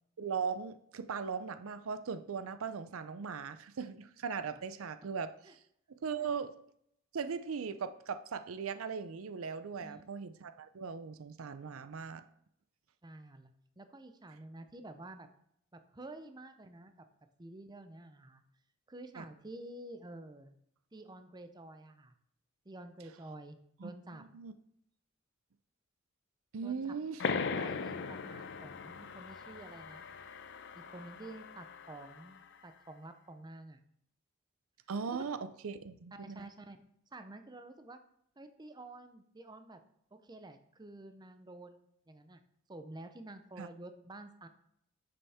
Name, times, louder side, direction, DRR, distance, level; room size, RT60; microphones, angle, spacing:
voice 1, 0.2-5.3 6.0-6.5 7.1-12.2 19.2-19.3 23.8-24.5 26.5-27.2 34.9-36.5 43.6-43.7, right 6 dB, 75° right, 12 dB, 0.5 m, -39 dB
voice 2, 13.0-15.3 15.7-17.1 17.4-18.4 18.9-20.6 20.9-22.1 22.7-24.2 26.6-27.0 27.3-30.0 30.7-33.8 35.1-35.2 36.1-36.8 37.1-38.0 38.4-39.8 40.1-42.4 42.7-44.5, right 2 dB, 20° right, 8 dB, 0.6 m, -50 dB
sound 1, 27.2-32.4, left 5 dB, 60° left, 0.6 m, -39 dB
8.9 x 6.9 x 3.5 m, 0.71 s
head